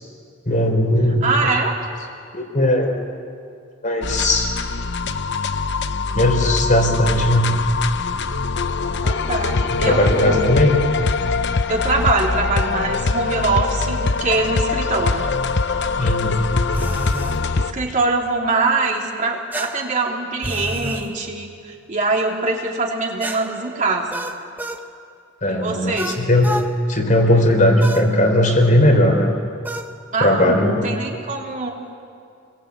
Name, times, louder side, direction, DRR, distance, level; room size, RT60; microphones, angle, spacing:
voice 1, 0.5-1.3 2.3-2.9 3.8-4.5 6.1-7.5 9.7-10.8 16.0-16.4 25.4-26.5 26.9-29.4 30.2-30.9, left 1 dB, 40° left, 4 dB, 4.0 m, -17 dB
voice 2, 1.2-1.8 9.0-10.5 11.7-15.3 17.5-24.3 25.5-26.2 30.1-31.7, right 3 dB, 40° right, -1 dB, 3.5 m, -23 dB
sound 1, 4.0-17.7, left 4 dB, 65° left, 0.8 m, -22 dB
sound 2, 16.7-17.4 19.5-21.1 23.2-24.9 26.0-26.7 27.8-28.1 29.6-29.9, right 1 dB, 10° right, 1.3 m, -30 dB
30.0 x 23.0 x 8.4 m, 2.4 s
head